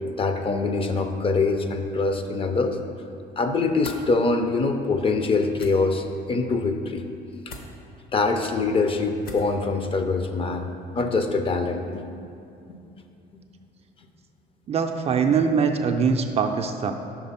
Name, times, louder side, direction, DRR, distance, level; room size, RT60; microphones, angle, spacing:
voice 1, 0.2-2.8 3.4-7.1 8.1-12.0, left 3 dB, 30° left, 6 dB, 0.5 m, -24 dB
sound 1, 3.8-4.0 5.5-5.7 7.5-7.7 9.2-9.5, left 3 dB, 65° left, 0.8 m, -39 dB
voice 2, 14.7-16.9, right 6 dB, 40° right, 5 dB, 0.4 m, -22 dB
6.0 x 3.6 x 5.5 m, 2.6 s
cardioid pair, 110°, 17 cm